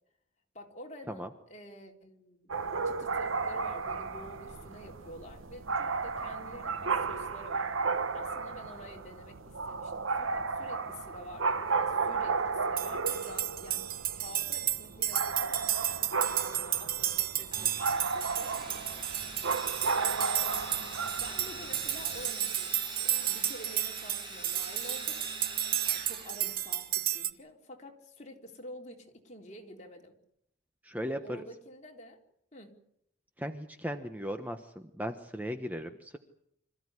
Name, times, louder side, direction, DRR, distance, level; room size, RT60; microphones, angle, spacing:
voice 1, 0.5-2.5 2.8-7.7 8.1-17.8 18.1-19.1 19.9-25.2 25.9-30.2 31.2-32.2 32.5-32.8, equal, 35° left, 2 dB, 3.7 m, -49 dB
sound 1, 2.5-22.3, right 4 dB, 80° right, 1.1 m, -34 dB
sound 2, 12.8-27.3, right 12 dB, 45° right, 1.2 m, -33 dB
Sawing, 17.5-27.0, right 3 dB, 25° right, 5.9 m, -43 dB
voice 2, 30.8-31.4 33.4-36.2, equal, 10° right, 7 dB, 1.1 m, -37 dB
26.5 x 15.0 x 9.7 m, 0.73 s
head